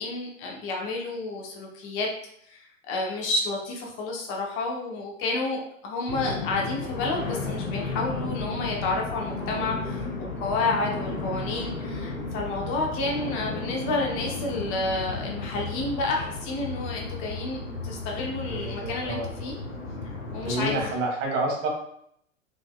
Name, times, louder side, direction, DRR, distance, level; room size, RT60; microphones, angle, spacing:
voice 1, 0.0-2.1 2.5-19.6 20.3-21.0, left 2 dB, 35° left, 0 dB, 0.9 m, -30 dB
sound 1, 6.1-20.9, left 3 dB, 90° left, 1.0 m, -34 dB
voice 2, 18.5-19.3 20.5-21.7, right 2 dB, 35° right, 0 dB, 1.5 m, -29 dB
5.1 x 3.4 x 2.3 m, 0.70 s
figure-of-eight pair, 105°, 40 cm